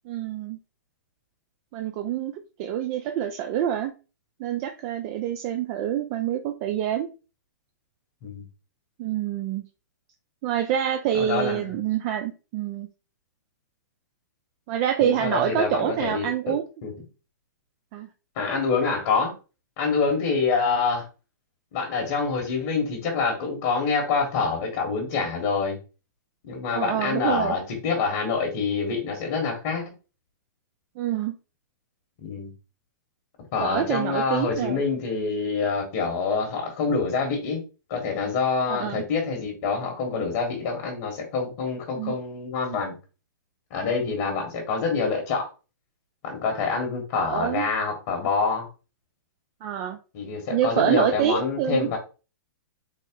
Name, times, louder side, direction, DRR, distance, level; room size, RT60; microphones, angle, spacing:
voice 1, 0.1-0.6 1.7-3.9 4.4-7.1 9.0-9.6 10.4-12.9 14.7-16.6 17.9-18.1 26.7-27.5 31.0-31.4 33.6-34.8 38.7-39.0 41.9-42.1 47.2-47.7 49.6-50.0 50.5-51.9, right 10 dB, 40° right, 5 dB, 0.4 m, -26 dB
voice 2, 11.2-11.7 15.0-16.5 16.8-16.9 18.4-19.3 19.8-21.0 21.7-25.8 26.4-29.8 32.2-32.5 33.5-37.6 37.9-43.0 43.7-45.5 46.2-48.7 50.1-52.0, left 4 dB, 50° left, 3 dB, 1.3 m, -26 dB
4.1 x 2.0 x 3.7 m, 0.33 s
hypercardioid pair, 130°, 11 cm